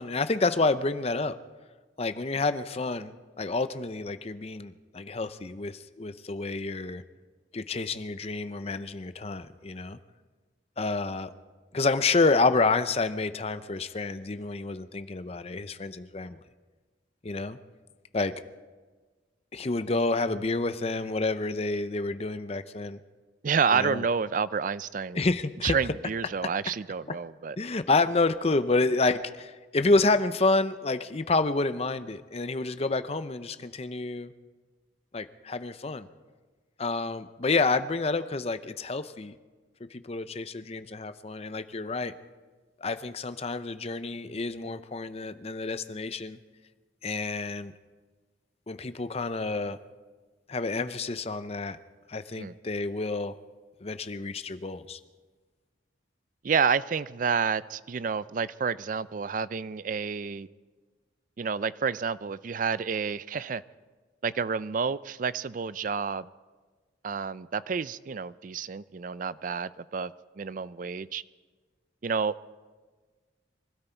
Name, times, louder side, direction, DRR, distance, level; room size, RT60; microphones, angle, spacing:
voice 1, 0.0-1.3 2.0-7.0 7.5-10.0 10.8-11.3 11.7-16.4 17.2-17.6 18.1-18.3 19.5-23.0 23.7-24.0 25.1-25.8 27.6-34.3 35.1-36.1 36.8-39.3 39.9-42.1 42.8-46.4 47.0-47.7 48.7-49.8 50.5-51.8 52.1-53.3 53.8-55.0, left 3 dB, 35° left, 12 dB, 0.6 m, -29 dB
voice 2, 23.4-25.2 25.6-27.6 52.4-52.5 56.4-60.5 61.4-63.6 64.2-66.3 67.0-71.2 72.0-72.3, right 6 dB, 45° right, 17 dB, 0.4 m, -29 dB
24.5 x 13.0 x 4.5 m, 1.4 s
head